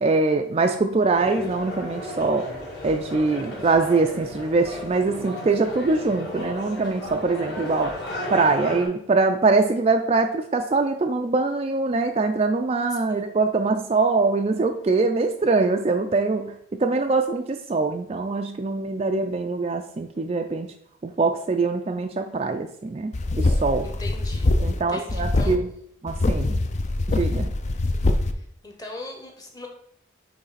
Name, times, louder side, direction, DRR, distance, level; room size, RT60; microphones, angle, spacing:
voice 1, 0.0-2.5 2.8-8.0 8.3-20.7 21.0-23.9 24.6-25.7 26.0-26.6 27.1-27.5, right 3 dB, 30° right, 5 dB, 0.3 m, -23 dB
sound 1, 1.1-8.9, left 1 dB, 55° left, 2.8 m, -34 dB
voice 2, 12.9-13.3 23.8-25.6 28.3-29.7, left 2 dB, 20° left, 2 dB, 1.0 m, -40 dB
sound 2, 23.1-24.8 25.1-25.5 26.1-28.3, left 2 dB, 35° left, 0.4 m, -23 dB
8.9 x 3.3 x 4.1 m, 0.69 s
head